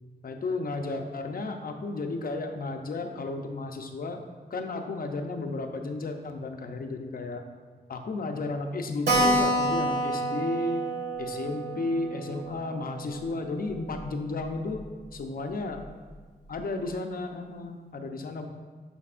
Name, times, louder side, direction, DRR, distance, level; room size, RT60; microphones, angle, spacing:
voice 1, 0.2-4.2 4.5-7.4 7.9-10.9 11.2-15.8 16.5-18.5, left 3 dB, 60° left, 5 dB, 0.7 m, -33 dB
Keyboard (musical), 9.1-14.1 14.4-14.5 14.8-14.9 15.1-15.2 15.8-16.1, right 1 dB, 80° right, 1.7 m, -29 dB
11.0 x 5.2 x 2.5 m, 1.5 s
wide cardioid pair, 125°, 17 cm